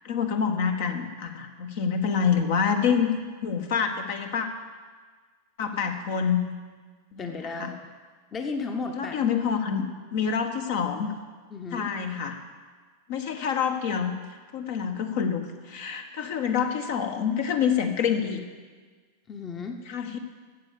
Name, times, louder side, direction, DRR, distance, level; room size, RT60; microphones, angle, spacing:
voice 1, 0.0-3.1 3.4-4.5 5.6-6.5 7.1-7.7 8.9-11.1 11.7-12.4 13.1-14.2 14.5-18.4 19.9-20.2, left 7 dB, 50° left, 6 dB, 1.2 m, -27 dB
voice 2, 7.2-7.8 8.3-9.2 11.5-11.9 19.3-19.8, left 4 dB, 25° left, 5 dB, 1.0 m, -34 dB
13.5 x 8.3 x 6.9 m, 1.5 s
figure-of-eight pair, 90°, 0 cm